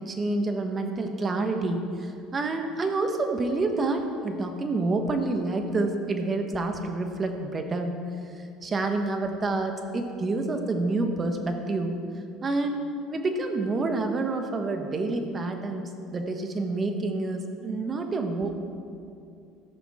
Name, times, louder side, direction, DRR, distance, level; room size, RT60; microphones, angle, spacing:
voice 1, 0.0-8.0 8.6-12.0 12.4-12.8 13.1-18.5, right 2 dB, 30° right, 5 dB, 1.3 m, -28 dB
13.5 x 11.0 x 3.7 m, 2.5 s
supercardioid pair, 85°, 0 cm